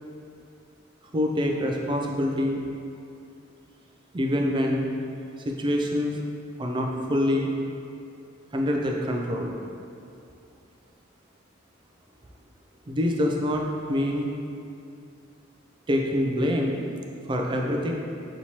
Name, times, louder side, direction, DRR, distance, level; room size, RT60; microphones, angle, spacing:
voice 1, 1.1-2.6 4.1-4.9 5.5-6.2 6.6-7.5 8.5-9.5 12.9-14.3 15.9-16.8 17.3-17.9, left 1 dB, 25° right, 1 dB, 0.3 m, -25 dB
6.0 x 2.9 x 2.8 m, 2.5 s
head